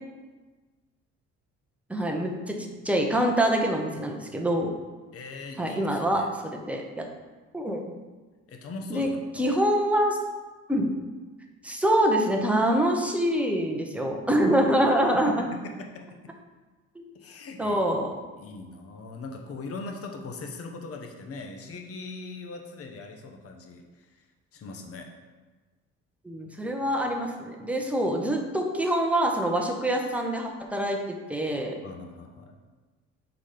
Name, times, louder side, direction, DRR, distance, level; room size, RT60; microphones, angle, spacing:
voice 1, 1.9-4.7 5.6-6.2 6.5-7.1 7.5-7.9 8.9-9.1 9.4-10.2 10.7-10.9 11.6-15.4 16.9-17.0 17.6-18.1 26.2-31.8, right 1 dB, 5° right, 1 dB, 0.9 m, -25 dB
voice 2, 5.1-6.3 8.5-9.5 15.1-16.3 17.1-18.0 18.4-24.3 24.5-25.1 31.8-32.6, left 3 dB, 50° left, 3 dB, 1.0 m, -40 dB
5.8 x 4.1 x 5.0 m, 1.3 s
cardioid pair, 110°, 29 cm